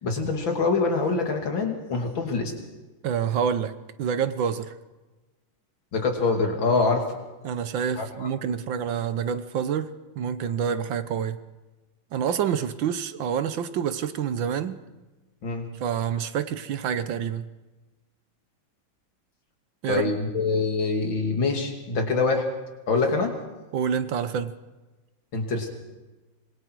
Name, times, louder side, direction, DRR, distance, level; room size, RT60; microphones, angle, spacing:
voice 1, 0.0-2.5 5.9-7.0 8.0-8.3 15.4-15.7 19.9-22.5 22.9-23.3 25.3-25.7, left 4 dB, 65° left, 3 dB, 3.3 m, -25 dB
voice 2, 3.0-3.7 4.0-4.7 6.7-6.8 7.4-9.9 10.2-11.4 12.1-14.8 15.8-17.5 19.8-20.1 23.7-24.5, right 8 dB, 70° right, 12 dB, 1.6 m, -27 dB
25.5 x 22.0 x 4.7 m, 1.2 s
omnidirectional pair, 2.3 m